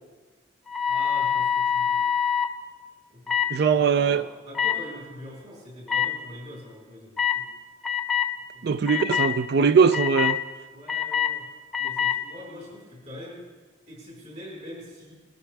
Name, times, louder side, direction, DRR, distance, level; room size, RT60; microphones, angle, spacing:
sound 1, 0.7-2.5 3.3-3.5 4.5-4.7 5.9-6.0 7.2-7.4 7.8-8.3 8.9-9.3 9.9-10.4 10.9-11.3 11.7-12.2, left 8 dB, ahead, 0.7 m, -24 dB
voice 1, 0.9-2.0 3.1-3.4 3.7-7.5 8.5-8.8 10.7-11.5 11.8-13.5 13.9-15.2, equal, 40° right, 4.5 m, -43 dB
voice 2, 3.5-4.2 8.6-10.4, right 6 dB, 55° right, 0.4 m, -21 dB
21.0 x 13.0 x 3.4 m
head